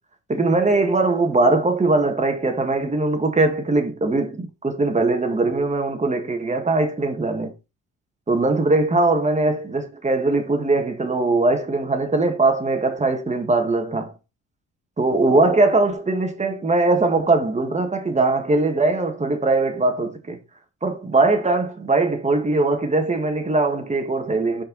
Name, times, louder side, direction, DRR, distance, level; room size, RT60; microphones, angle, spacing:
voice 1, 0.3-7.5 8.3-14.1 15.0-20.4 20.8-24.6, right 2 dB, 25° right, 1.8 m, -20 dB
5.7 x 4.8 x 3.9 m
cardioid pair, 90°, 30 cm